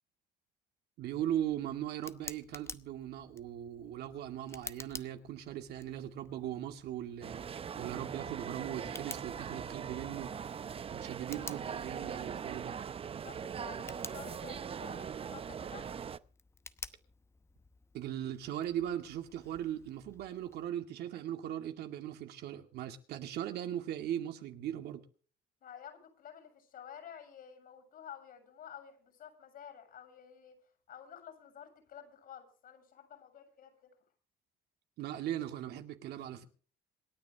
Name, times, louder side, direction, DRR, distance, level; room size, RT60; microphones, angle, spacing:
Tick, 1.0-20.7, left 3 dB, 15° left, 0.9 m, -52 dB
voice 1, 1.0-7.4 7.8-10.3 10.9-12.7 17.9-25.0 35.0-36.4, right 11 dB, 75° right, 2.2 m, -39 dB
sound 1, 7.2-16.2, right 7 dB, 35° right, 0.7 m, -41 dB
voice 2, 13.2-15.9 25.6-30.6 30.9-34.0, left 9 dB, 60° left, 7.2 m, -51 dB
27.0 x 9.9 x 3.5 m
cardioid pair, 110°, 17 cm